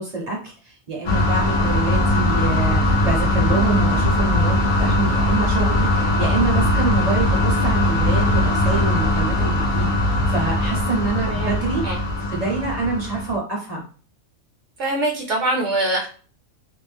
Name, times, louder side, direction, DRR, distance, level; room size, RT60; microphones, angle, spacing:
voice 1, 0.0-13.8, right 3 dB, 40° right, -2 dB, 0.6 m, -26 dB
sound 1, 1.1-13.4, left 1 dB, 55° left, 0.5 m, -20 dB
voice 2, 11.3-11.6 11.8-12.0 14.8-16.1, right 2 dB, 70° right, 0 dB, 0.9 m, -23 dB
2.5 x 2.1 x 3.3 m, 0.40 s
omnidirectional pair, 1.4 m